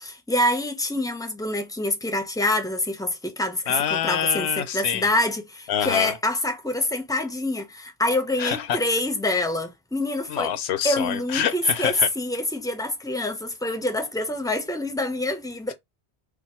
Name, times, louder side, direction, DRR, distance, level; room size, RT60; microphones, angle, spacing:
voice 1, 0.0-10.5 10.8-15.7, left 1 dB, 5° left, 0.3 m, -26 dB
voice 2, 3.7-5.1 5.7-6.2 8.4-8.8 10.3-12.1, left 9 dB, 85° left, 0.9 m, -26 dB
2.6 x 2.4 x 4.1 m
omnidirectional pair, 1.1 m